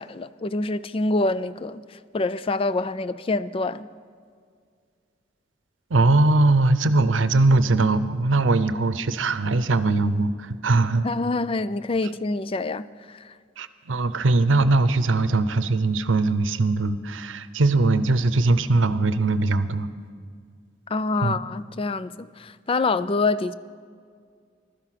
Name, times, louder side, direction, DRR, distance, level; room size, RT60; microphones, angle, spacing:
voice 1, 0.0-3.9 11.0-13.3 20.9-23.5, left 3 dB, 30° left, 0.4 m, -26 dB
voice 2, 5.9-11.0 13.6-19.9 21.2-21.4, right 2 dB, 85° right, 0.7 m, -21 dB
15.5 x 13.0 x 5.9 m
head